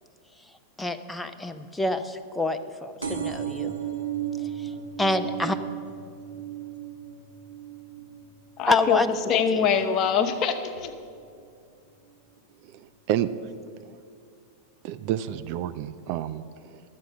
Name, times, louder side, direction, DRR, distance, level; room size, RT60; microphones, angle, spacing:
voice 1, 0.4-3.7 4.4-5.6 8.7-9.1 9.5-9.7, left 2 dB, 5° left, 8 dB, 0.5 m, -28 dB
sound 1, 3.0-10.2 10.7-11.2 12.1-12.2 12.4-12.5 12.7-12.8, right 9 dB, 80° right, 1.0 m, -35 dB
voice 2, 8.6-9.0 9.2-10.9, left 7 dB, 35° left, 7 dB, 0.8 m, -24 dB
voice 3, 12.6-13.3 13.8-14.0 14.8-16.8, right 11 dB, 45° right, 12 dB, 0.3 m, -30 dB
12.5 x 7.6 x 6.3 m, 2.4 s
figure-of-eight pair, 90°, 0 cm